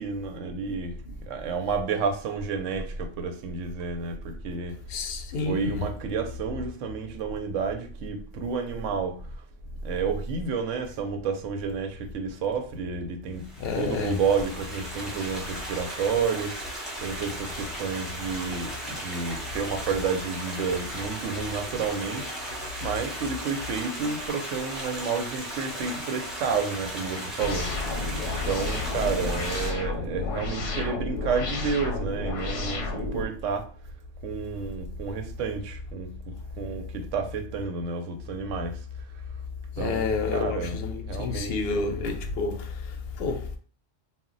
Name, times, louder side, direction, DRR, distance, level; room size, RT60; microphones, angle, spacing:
voice 1, 0.0-1.0 1.3-4.7 5.5-9.2 9.8-13.5 13.7-16.6 17.0-27.7 28.5-33.7 34.2-38.8 39.8-40.8 41.1-41.9, right 5 dB, 85° right, 0.9 m, -30 dB
voice 2, 4.9-5.8 13.6-14.2 39.8-43.6, left 4 dB, 65° left, 0.7 m, -29 dB
Stream, 13.4-29.7, right 1 dB, ahead, 0.5 m, -36 dB
sound 1, 27.4-33.3, left 3 dB, 85° left, 1.0 m, -31 dB
2.2 x 2.1 x 3.7 m
omnidirectional pair, 1.2 m